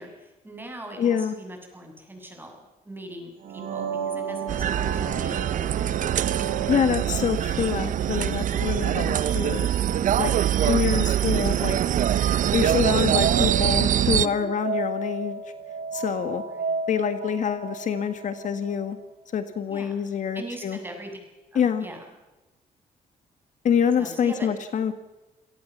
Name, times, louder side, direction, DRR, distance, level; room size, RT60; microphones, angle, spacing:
voice 1, 0.0-5.5 14.2-14.5 16.5-16.8 19.7-20.1 20.3-21.2 21.5-22.0 24.0-24.5, right 1 dB, 15° right, 3 dB, 7.0 m, -41 dB
voice 2, 1.0-1.3 6.7-9.7 10.2-10.3 10.6-11.8 12.5-15.4 15.9-16.4 16.9-19.0 19.3-20.8 21.5-21.8 23.6-24.9, left 7 dB, 60° left, 10 dB, 1.7 m, -26 dB
sound 1, 3.4-19.1, right 5 dB, 80° right, 4.3 m, -35 dB
sound 2, 4.5-14.3, right 10 dB, 60° right, 0.8 m, -23 dB
28.0 x 18.0 x 7.3 m, 1.1 s
cardioid pair, 105°, 15 cm